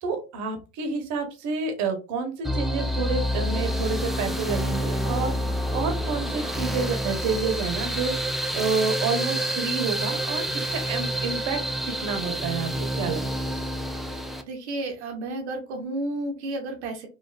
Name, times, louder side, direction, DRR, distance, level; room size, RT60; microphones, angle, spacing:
voice 1, 0.0-5.3 5.7-11.6 11.8-13.5, right 5 dB, 55° right, 5 dB, 1.0 m, -29 dB
sound 1, 2.4-14.4, equal, ahead, 0.3 m, -28 dB
voice 2, 14.4-17.1, right 2 dB, 75° right, 4 dB, 0.9 m, -32 dB
3.3 x 2.5 x 2.3 m, 0.31 s
hypercardioid pair, 70°, 34 cm